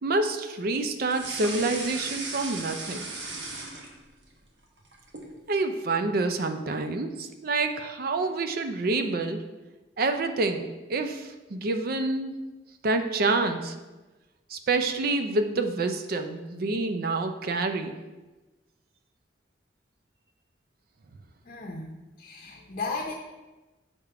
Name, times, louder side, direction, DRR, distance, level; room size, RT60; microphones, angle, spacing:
voice 1, 0.0-3.1 5.5-9.4 10.0-12.3 12.8-13.7 14.5-17.9, right 3 dB, 55° right, 7 dB, 0.5 m, -27 dB
sound 1, 1.1-4.3 4.6-5.3, right 3 dB, 75° right, 1.1 m, -36 dB
voice 2, 21.5-23.1, left 3 dB, 50° left, 0 dB, 0.7 m, -35 dB
6.6 x 3.6 x 4.7 m, 1.1 s
head